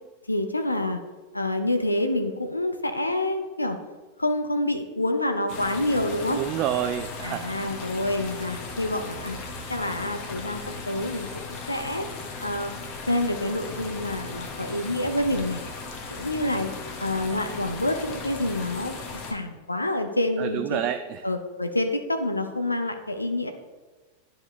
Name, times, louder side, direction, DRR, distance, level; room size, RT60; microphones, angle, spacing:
voice 1, 0.3-1.0 1.3-3.8 4.2-6.4 7.2-9.4 9.7-11.4 11.7-12.1 12.4-12.7 13.1-15.6 16.1-16.7 17.0-19.0 19.3-20.8 21.2-23.5, left 1 dB, 85° left, 6 dB, 0.6 m, -27 dB
sound 1, 5.5-19.3, left 3 dB, 40° left, 1.2 m, -37 dB
voice 2, 6.3-7.5 20.4-21.2, right 11 dB, 40° right, 7 dB, 0.4 m, -28 dB
11.5 x 5.1 x 3.2 m, 1.2 s
figure-of-eight pair, 90°, 0 cm